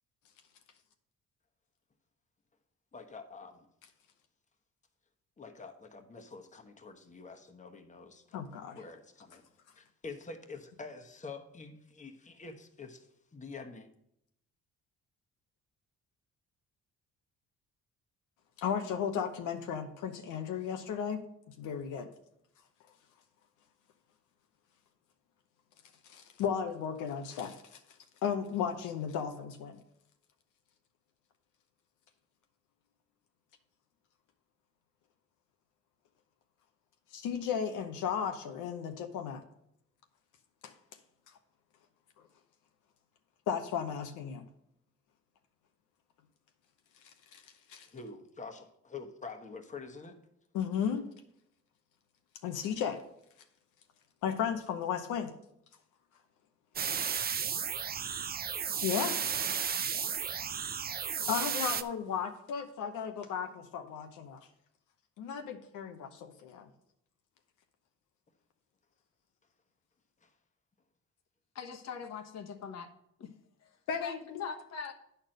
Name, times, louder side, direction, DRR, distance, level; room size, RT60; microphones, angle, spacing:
voice 1, 2.9-3.7 5.4-8.4 8.7-9.4 9.7-13.9 47.9-50.2 70.2-70.3, left 4 dB, 25° left, 4 dB, 1.1 m, -47 dB
voice 2, 8.3-8.8 18.6-21.2 21.6-22.1 26.0-27.8 28.2-29.8 37.1-39.4 40.6-40.7 43.5-44.5 47.3-47.4 47.7-47.9 50.5-51.1 52.4-53.0 54.2-55.3 58.8-59.2 59.7-60.4 61.3-64.5 65.2-66.7 73.9-74.4, left 7 dB, 90° left, 6 dB, 0.9 m, -35 dB
sound 1, 56.8-61.8, right 7 dB, 30° right, 0.5 m, -33 dB
voice 3, 71.5-72.9 73.2-73.3 74.0-74.9, left 6 dB, 60° left, 6 dB, 1.2 m, -41 dB
9.7 x 4.4 x 6.4 m, 0.76 s
cardioid pair, 90°, 30 cm